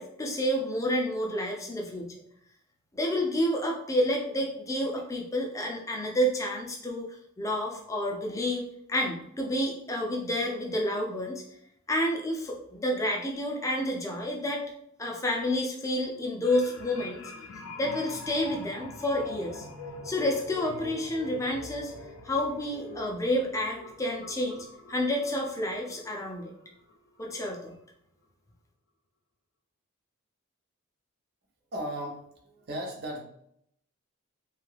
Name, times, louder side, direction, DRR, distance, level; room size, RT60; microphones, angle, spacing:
voice 1, 0.0-2.1 2.9-7.1 7.4-8.6 8.9-11.4 11.9-14.6 15.0-17.2 17.8-19.7 20.0-21.9 22.2-26.5 27.2-27.7, left 1 dB, 15° left, 0 dB, 0.5 m, -29 dB
sound 1, 16.4-27.2 27.6-27.7, left 3 dB, 70° left, 0.4 m, -44 dB
voice 2, 31.7-33.2, equal, 45° right, 2 dB, 0.6 m, -36 dB
2.7 x 2.3 x 3.2 m, 0.71 s
head